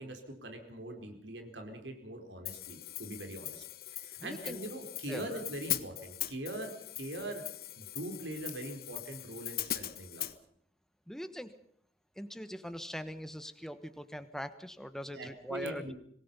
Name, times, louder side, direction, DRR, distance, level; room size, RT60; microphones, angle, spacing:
voice 1, 0.0-3.6 3.9-7.4 7.8-10.3 15.1-15.9, right 1 dB, 85° right, 5 dB, 4.6 m, -42 dB
Hi-hat, 2.5-10.4, left 13 dB, 55° left, 1.3 m, -40 dB
voice 2, 4.2-4.6 5.1-5.3 11.1-11.5 12.2-15.9, equal, 5° left, 11 dB, 1.2 m, -41 dB
26.0 x 19.5 x 5.6 m, 0.68 s
head